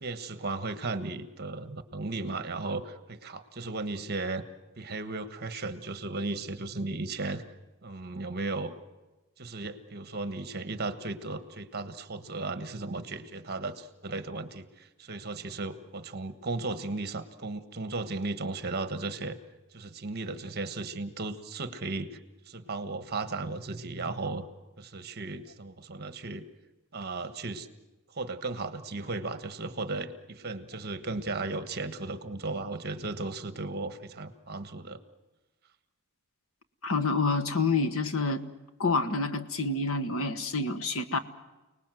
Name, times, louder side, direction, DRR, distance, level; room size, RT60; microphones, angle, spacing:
voice 1, 0.0-4.4 4.8-7.4 7.8-8.7 9.4-19.4 19.7-22.2 22.5-24.5 24.8-26.4 26.9-27.7 28.1-35.0, right 3 dB, 45° right, 11 dB, 1.4 m, -35 dB
voice 2, 36.8-38.4 38.8-41.2, left 3 dB, 70° left, 8 dB, 1.4 m, -28 dB
29.5 x 19.5 x 7.7 m, 1.1 s
head